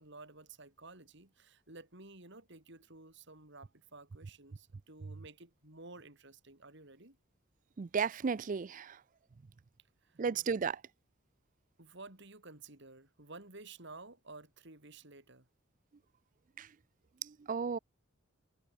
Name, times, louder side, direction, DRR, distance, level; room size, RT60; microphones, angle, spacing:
voice 1, 0.0-7.2 10.0-10.2 11.8-15.5, right 3 dB, 60° right, 5.1 m, -53 dB
voice 2, 7.8-9.0 10.2-10.8 16.6-16.7 17.2-17.8, right 5 dB, 40° right, 0.4 m, -34 dB
head